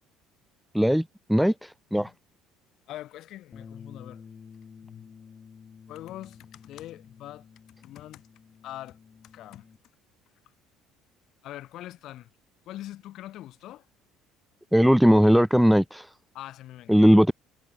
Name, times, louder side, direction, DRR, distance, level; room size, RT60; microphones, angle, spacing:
voice 1, 0.7-1.0 1.3-2.1 14.7-16.1 16.9-17.3, equal, ahead, 0.5 m, -19 dB
voice 2, 2.9-4.2 4.8-5.1 5.9-7.4 7.8-8.2 8.6-9.0 9.3-9.7 11.4-12.3 12.7-13.8 16.3-17.1, left 14 dB, 55° left, 4.6 m, -42 dB
Bass guitar, 3.5-9.8, left 6 dB, 30° left, 2.6 m, -50 dB
cardioid pair, 135°, 0 cm